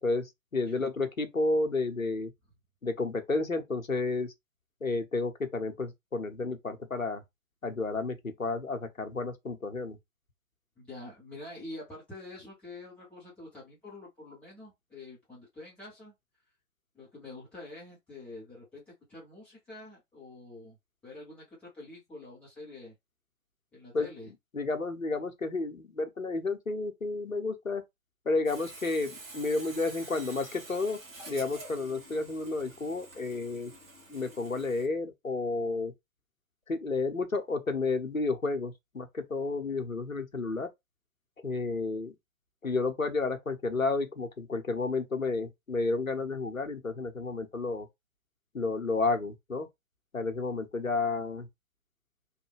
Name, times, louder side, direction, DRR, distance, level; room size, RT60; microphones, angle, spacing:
voice 1, 0.0-2.3 2.8-4.3 4.8-7.2 7.6-10.0 23.9-24.1 24.5-27.8 28.3-31.0 31.3-33.7 34.1-35.9 36.7-40.7 41.4-42.1 42.6-47.9 48.5-49.7 50.1-51.5, left 3 dB, 90° left, 0.9 m, -31 dB
voice 2, 10.8-16.1 16.9-20.8 21.0-22.9 23.7-24.3, left 2 dB, 5° left, 0.6 m, -46 dB
Sawing, 28.4-34.9, right 2 dB, 45° right, 1.3 m, -48 dB
3.1 x 2.2 x 3.2 m
figure-of-eight pair, 125°, 39 cm